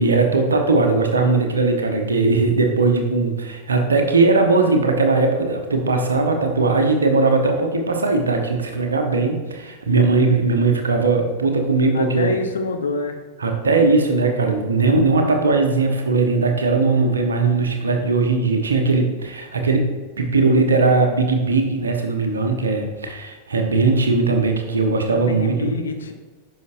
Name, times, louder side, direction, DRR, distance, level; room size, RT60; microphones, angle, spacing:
voice 1, 0.0-12.3 13.4-19.9 20.2-25.7, right 3 dB, 70° right, 4 dB, 1.0 m, -19 dB
voice 2, 11.9-13.2 25.1-26.1, left 3 dB, 70° left, 5 dB, 0.8 m, -26 dB
9.4 x 5.9 x 2.6 m, 1.3 s
figure-of-eight pair, 90°, 0 cm